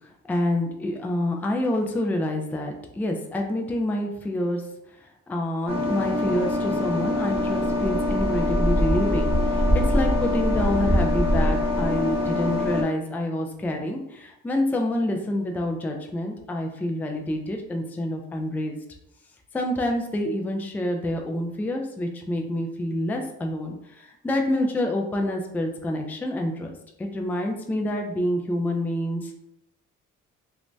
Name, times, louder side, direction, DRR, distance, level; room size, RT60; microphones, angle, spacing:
voice 1, 0.3-4.6 5.0-18.8 19.5-26.7 27.0-29.3, left 1 dB, 5° left, 3 dB, 0.3 m, -27 dB
sound 1, 5.7-12.8, left 1 dB, 20° right, 0.9 m, -23 dB
2.6 x 2.1 x 3.1 m, 0.80 s
cardioid pair, 90°, 30 cm